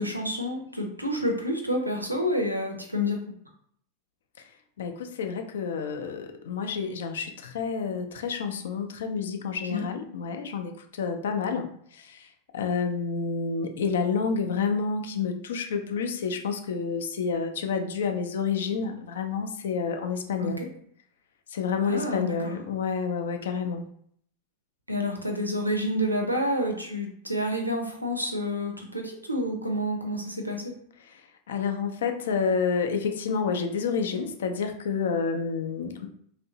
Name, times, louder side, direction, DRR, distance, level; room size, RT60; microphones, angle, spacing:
voice 1, 0.0-3.2 9.7-9.8 20.4-20.5 21.9-22.3 24.9-30.7, equal, 85° right, 3 dB, 0.5 m, -29 dB
voice 2, 4.8-20.6 21.5-23.9 31.0-36.1, left 5 dB, 60° left, 5 dB, 0.4 m, -29 dB
2.9 x 2.5 x 2.8 m, 0.65 s
figure-of-eight pair, 90°, 0 cm